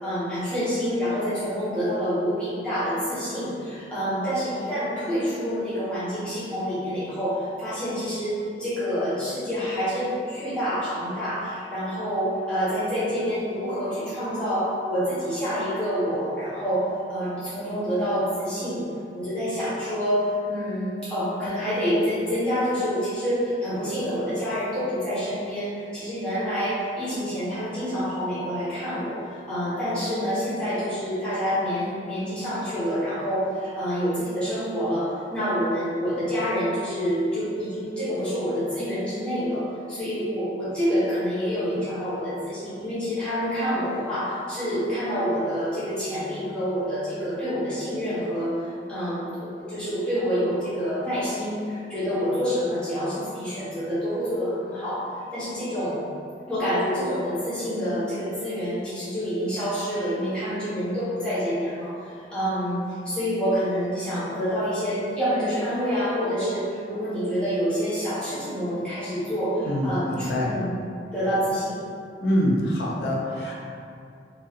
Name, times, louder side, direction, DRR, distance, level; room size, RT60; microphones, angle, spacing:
voice 1, 0.0-18.9 19.1-55.0 55.3-56.1 56.5-70.7 71.1-71.8, equal, 5° left, -14 dB, 0.9 m, -27 dB
voice 2, 69.7-70.5 72.2-73.5, equal, 65° left, -3 dB, 0.5 m, -25 dB
3.0 x 2.4 x 2.8 m, 2.5 s
head